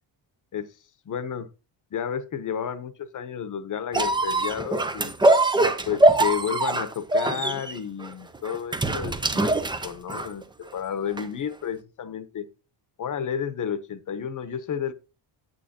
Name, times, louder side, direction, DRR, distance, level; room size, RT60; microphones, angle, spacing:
voice 1, 1.0-1.5 1.9-5.1 5.9-9.5 9.8-10.4 10.7-12.5 13.0-14.9, left 8 dB, 40° left, 12 dB, 0.9 m, -31 dB
sound 1, 3.9-10.4 11.2-11.3, right 2 dB, 10° right, 0.4 m, -23 dB
8.9 x 8.8 x 2.8 m, 0.31 s
cardioid pair, 170°, 49 cm